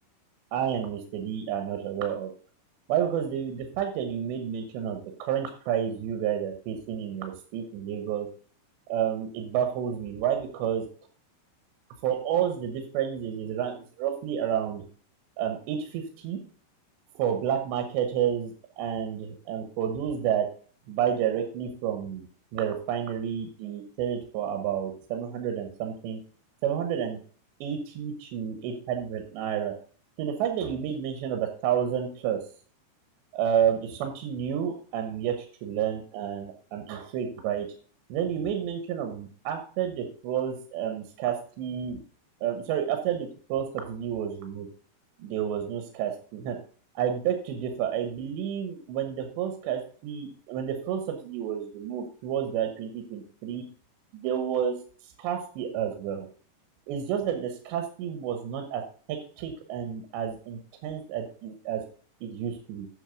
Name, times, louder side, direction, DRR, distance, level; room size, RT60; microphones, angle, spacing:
voice 1, 0.5-2.3 2.9-8.3 8.9-10.9 12.0-14.8 15.4-16.4 17.2-20.5 20.9-22.3 22.5-26.2 26.6-27.2 27.6-29.7 30.2-32.4 33.3-35.3 35.6-37.7 38.1-42.0 42.4-44.7 45.2-46.6 46.9-53.6 54.1-54.7 55.2-56.3 56.9-58.8 59.1-61.8 62.2-62.9, right 9 dB, 85° right, 6 dB, 3.4 m, -30 dB
10.0 x 6.3 x 5.1 m, 0.42 s
omnidirectional pair, 5.0 m